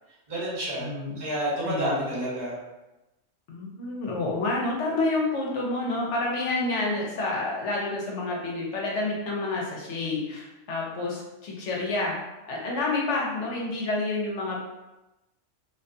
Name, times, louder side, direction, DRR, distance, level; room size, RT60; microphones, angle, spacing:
voice 1, 0.3-0.9 1.2-2.6, right 1 dB, 40° right, -9 dB, 1.3 m, -29 dB
voice 2, 0.8-1.2 1.6-2.1 3.5-12.2 12.5-14.6, left 2 dB, 70° left, -3 dB, 0.9 m, -29 dB
2.5 x 2.2 x 2.6 m, 1.0 s
omnidirectional pair, 1.3 m